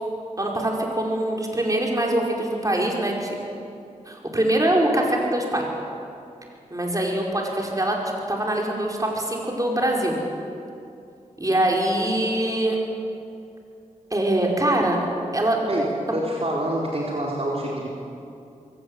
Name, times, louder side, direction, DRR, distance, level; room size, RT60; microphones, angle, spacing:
voice 1, 0.4-3.4 4.1-5.7 6.7-8.0 8.3-10.2 11.4-12.8 14.1-15.0 15.3-15.6, right 1 dB, 25° right, -1 dB, 5.3 m, -23 dB
voice 2, 16.1-17.9, right 1 dB, 45° right, -3 dB, 4.1 m, -26 dB
22.5 x 17.5 x 8.2 m, 2.5 s
cardioid pair, 45°, 14 cm